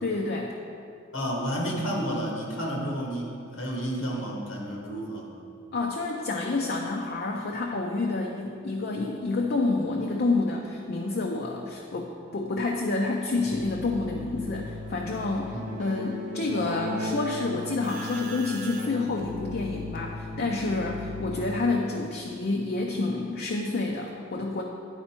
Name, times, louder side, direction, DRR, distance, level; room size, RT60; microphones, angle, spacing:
voice 1, 0.0-0.6 5.7-24.6, left 3 dB, 50° left, 0 dB, 0.5 m, -29 dB
voice 2, 1.1-5.3 15.5-15.7, equal, 90° left, -1 dB, 1.4 m, -31 dB
Keyboard (musical), 13.4-21.8, left 2 dB, 40° right, 0.8 m, -36 dB
10.0 x 4.4 x 4.4 m, 2.5 s
head